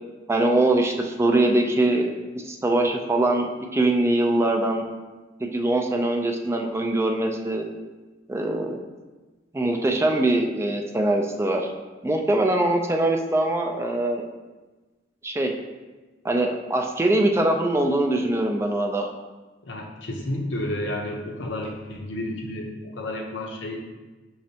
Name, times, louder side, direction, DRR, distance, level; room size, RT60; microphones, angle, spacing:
voice 1, 0.3-2.1 2.4-4.8 5.4-7.7 8.3-8.8 9.5-11.7 12.0-14.2 15.2-15.5 16.2-19.1, right 1 dB, 15° right, 2 dB, 0.3 m, -22 dB
voice 2, 19.6-23.8, left 1 dB, 85° left, 1 dB, 0.7 m, -31 dB
5.9 x 3.2 x 2.7 m, 1.2 s
head